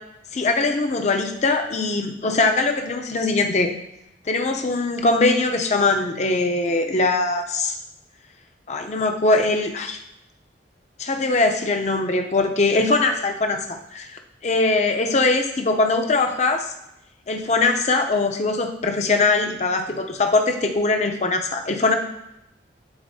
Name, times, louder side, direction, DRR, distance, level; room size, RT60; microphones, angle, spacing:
voice 1, 0.3-3.7 4.3-7.8 8.7-10.0 11.0-16.7 17.3-21.9, left 3 dB, 40° left, 5 dB, 0.6 m, -21 dB
11.5 x 4.1 x 2.7 m, 0.85 s
head